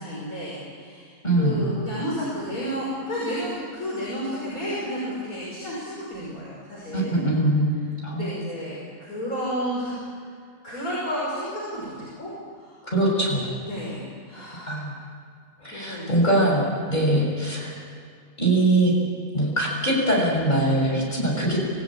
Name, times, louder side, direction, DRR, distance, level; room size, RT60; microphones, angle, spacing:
voice 1, 0.0-7.2 8.1-10.3 10.6-11.9 12.2-12.3 12.6-12.8 13.7-14.9 15.7-16.2, equal, 75° left, -7 dB, 6.1 m, -32 dB
voice 2, 1.2-1.7 6.9-7.7 8.0-8.3 12.9-13.5 14.7-15.0 15.6-17.7 18.4-18.9 19.3-21.7, right 1 dB, 30° left, -2 dB, 6.4 m, -22 dB
26.0 x 16.5 x 8.8 m, 2.1 s
omnidirectional pair, 1.5 m